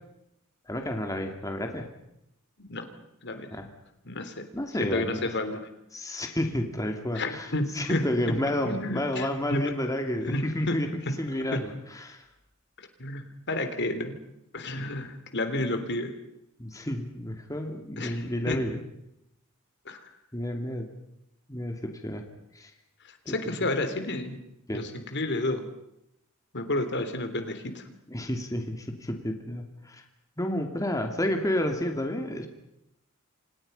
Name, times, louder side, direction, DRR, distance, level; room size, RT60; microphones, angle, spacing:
voice 1, 0.7-1.9 3.5-3.7 4.5-5.3 5.9-10.9 11.2-12.3 14.8-14.9 15.5-15.7 16.6-18.8 20.3-20.9 21.5-22.2 22.5-22.7 23.2-23.3 23.6-23.8 24.7-24.9 28.1-30.0 30.4-32.5, left 1 dB, 15° left, 4 dB, 2.7 m, -31 dB
voice 2, 4.0-4.4 4.8-5.7 7.1-8.0 8.6-9.6 10.3-10.8 11.1-11.2 11.5-11.6 12.8-14.2 14.5-15.1 15.3-16.2 18.0-18.6 19.8-20.0 23.0-24.4 24.7-25.6 26.5-27.8, left 2 dB, 55° left, 8 dB, 3.3 m, -31 dB
30.0 x 26.5 x 5.6 m, 0.81 s
head